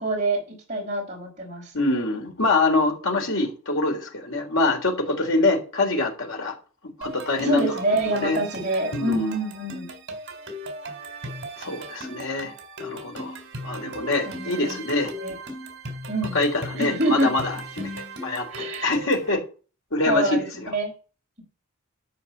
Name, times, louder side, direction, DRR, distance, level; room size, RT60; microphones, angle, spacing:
voice 1, 0.0-1.7 7.4-9.9 14.3-14.8 15.2-15.4 16.1-16.4 16.8-17.3 18.5-18.9 20.1-20.9, right 1 dB, 35° right, 5.4 m, -26 dB
voice 2, 1.7-6.6 7.0-7.7 8.2-8.4 8.9-9.3 11.6-12.5 12.8-13.4 13.6-15.1 16.3-19.4 19.9-20.7, left 2 dB, 65° left, 3.7 m, -25 dB
sound 1, 7.0-19.3, right 1 dB, 55° right, 3.7 m, -37 dB
13.0 x 5.0 x 8.6 m
head